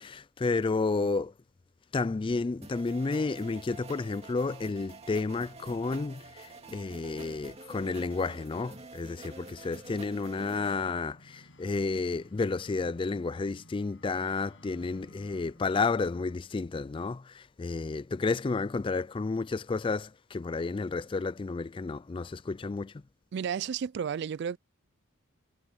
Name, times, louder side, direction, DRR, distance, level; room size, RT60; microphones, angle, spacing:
voice 1, 0.0-1.3 1.9-23.0, left 3 dB, 25° left, 0.3 m, -31 dB
sound 1, 2.6-10.7, right 3 dB, 30° right, 2.4 m, -48 dB
sound 2, 4.6-16.4, left 1 dB, 60° left, 6.5 m, -59 dB
voice 2, 23.3-24.6, right 7 dB, 55° right, 0.3 m, -32 dB
head